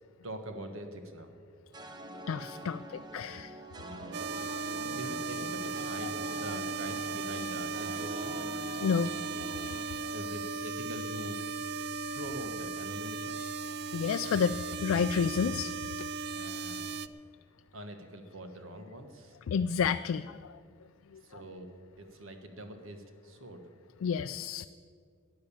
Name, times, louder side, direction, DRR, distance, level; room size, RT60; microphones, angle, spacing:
voice 1, 0.2-1.3 3.8-4.4 4.8-8.4 10.1-11.4 12.1-13.3 16.3-17.0 17.7-19.4 21.2-23.7, right 1 dB, 75° right, 6 dB, 1.5 m, -44 dB
sound 1, 1.7-11.1, right 1 dB, 20° right, 0.8 m, -46 dB
voice 2, 2.3-3.6 4.7-4.9 8.8-9.1 13.9-15.7 19.5-20.6 21.1-21.2 24.0-24.7, left 6 dB, 90° left, 10 dB, 0.4 m, -30 dB
sound 2, 4.1-17.1, right 4 dB, 50° right, 0.5 m, -37 dB
12.5 x 10.5 x 8.7 m, 2.1 s
head